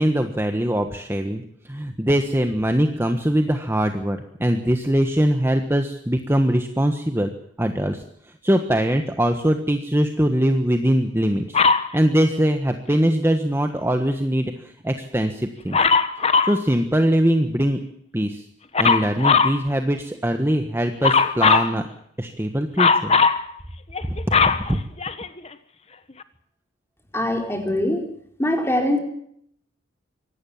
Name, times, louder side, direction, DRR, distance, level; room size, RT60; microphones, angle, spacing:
voice 1, 0.0-7.3 7.6-11.6 11.9-15.8 16.4-17.8 18.1-18.4 18.8-21.8 22.2-23.1 24.0-24.8, equal, 10° right, 6 dB, 1.4 m, -22 dB
Dog, 11.5-11.9 15.7-16.6 18.7-19.6 21.0-21.7 22.8-23.4 23.9-25.5 26.2-26.3, left 5 dB, 30° left, 1.4 m, -18 dB
voice 2, 27.1-28.0 28.4-29.0, left 1 dB, 15° left, 3 dB, 4.5 m, -22 dB
24.5 x 18.0 x 7.2 m, 0.68 s
head